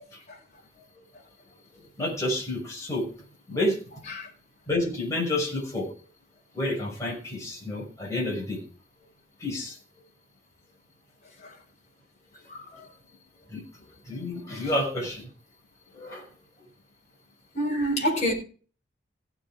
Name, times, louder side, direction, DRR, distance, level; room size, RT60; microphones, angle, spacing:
voice 1, 1.7-3.1 3.5-3.8 4.7-6.0 6.5-8.6 9.4-9.8 13.5-13.6 14.1-15.3 15.9-16.3, left 1 dB, 15° left, 6.0 m, -29 dB
voice 2, 12.5-12.9 17.5-18.3, equal, 40° left, 5.3 m, -28 dB
16.0 x 7.3 x 5.0 m
head